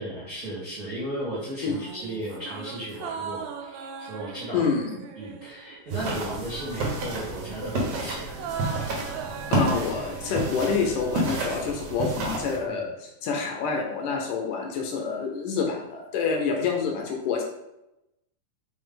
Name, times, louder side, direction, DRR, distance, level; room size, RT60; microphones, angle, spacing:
voice 1, 0.0-4.6 5.1-8.3 12.7-12.9, right 1 dB, 40° right, -8 dB, 1.4 m, -35 dB
sound 1, 1.7-6.5 6.8-11.1 11.4-11.5, right 7 dB, 85° right, 2.4 m, -40 dB
voice 2, 4.5-4.8 9.5-17.4, left 5 dB, 75° left, 1 dB, 2.3 m, -27 dB
sound 2, 5.9-12.6, right 2 dB, 60° right, 1.9 m, -30 dB
sound 3, 6.4-12.7, right 1 dB, 20° left, 1.1 m, -45 dB
5.6 x 4.9 x 3.8 m, 0.90 s
omnidirectional pair, 4.1 m